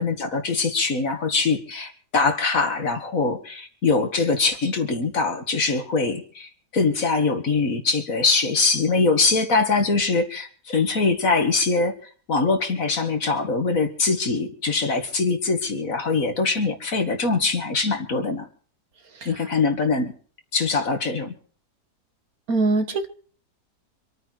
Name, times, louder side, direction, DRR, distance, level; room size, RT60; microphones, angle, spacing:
voice 1, 0.0-11.9 12.3-18.5 19.3-20.1 20.5-21.3, left 4 dB, 50° left, 6 dB, 2.2 m, -23 dB
voice 2, 19.1-19.5 22.5-23.1, right 3 dB, 60° right, 7 dB, 1.9 m, -23 dB
26.0 x 9.1 x 4.5 m, 0.43 s
omnidirectional pair, 1.8 m